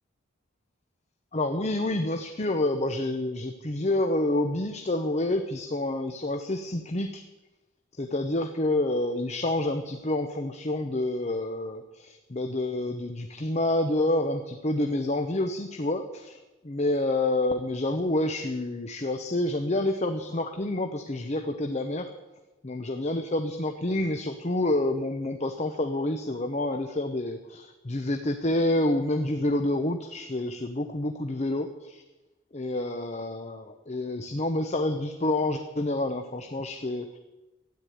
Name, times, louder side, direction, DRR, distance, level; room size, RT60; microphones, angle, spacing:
voice 1, 1.3-7.2 8.0-16.4 16.6-22.1 22.6-32.0 32.5-37.2, left 1 dB, 35° left, 7 dB, 0.8 m, -28 dB
13.5 x 9.8 x 9.2 m, 1.1 s
head